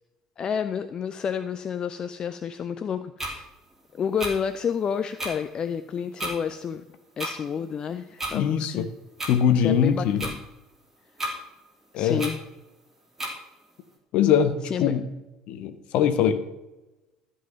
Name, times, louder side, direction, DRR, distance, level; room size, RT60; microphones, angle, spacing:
voice 1, 0.4-3.5 3.9-6.8 7.2-8.9 9.6-10.4 11.9-12.4 14.6-14.9, left 7 dB, 35° left, 11 dB, 0.5 m, -30 dB
sound 1, 3.2-3.3 4.2-4.3 5.2-5.3 6.2-6.3 7.2-7.3 8.2-8.3 9.2-9.3 10.2-10.3 11.2-11.3 12.2-12.3 13.2-13.3, right 1 dB, 15° right, 3.0 m, -30 dB
voice 2, 8.3-8.9 9.3-10.2 11.9-12.2 14.1-15.0 15.5-16.4, left 8 dB, 50° left, 11 dB, 1.0 m, -22 dB
13.0 x 5.7 x 6.7 m, 1.0 s
figure-of-eight pair, 60°, 2 cm